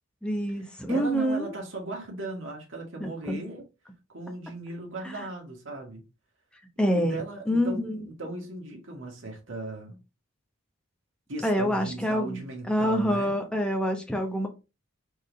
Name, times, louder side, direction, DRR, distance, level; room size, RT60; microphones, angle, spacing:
voice 1, 0.2-1.5 3.0-3.4 5.0-5.2 6.8-7.2 7.5-8.0 11.4-12.4 12.7-14.5, equal, 5° left, 0.8 m, -26 dB
voice 2, 0.9-3.6 4.1-6.0 6.9-10.0 11.3-13.4, right 2 dB, 65° right, 1.8 m, -37 dB
4.5 x 3.5 x 3.1 m
head